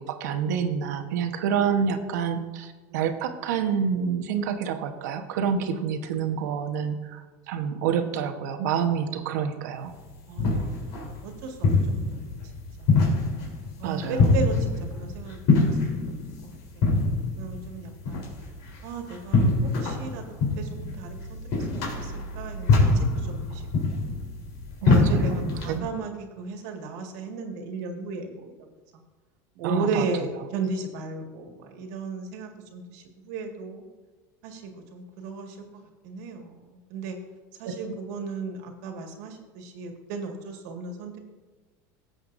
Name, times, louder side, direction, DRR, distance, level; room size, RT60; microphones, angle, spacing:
voice 1, 0.0-9.9 13.8-14.4 24.8-25.4 25.7-25.9 29.6-30.1, right 7 dB, 90° right, 6 dB, 1.1 m, -28 dB
sound 1, 9.9-25.8, left 3 dB, 65° left, 3.7 m, -25 dB
voice 2, 10.3-12.2 12.8-12.9 13.8-14.7 14.9-15.8 16.7-17.1 17.4-18.2 18.8-20.2 20.6-23.6 23.9-24.0 24.8-28.6 29.6-33.8 34.4-35.6 36.0-37.2 37.6-41.2, right 4 dB, 75° right, 3 dB, 1.9 m, -35 dB
17.0 x 7.9 x 2.6 m, 1.3 s
supercardioid pair, 140°, 9 cm